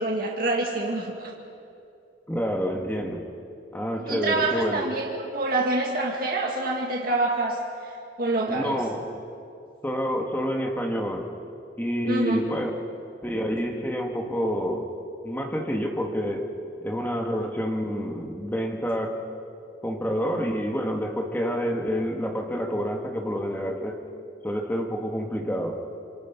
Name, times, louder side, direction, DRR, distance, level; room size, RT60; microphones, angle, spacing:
voice 1, 0.0-1.3 4.1-8.8 12.1-12.4, right 2 dB, 55° right, -1 dB, 2.1 m, -26 dB
voice 2, 2.3-3.2 3.7-4.9 8.5-9.0 9.8-11.3 11.8-12.7 13.2-14.9 15.2-16.5 16.8-19.2 19.8-23.9 24.4-25.8, equal, 10° left, 2 dB, 2.1 m, -28 dB
27.5 x 24.0 x 6.1 m, 2.6 s
head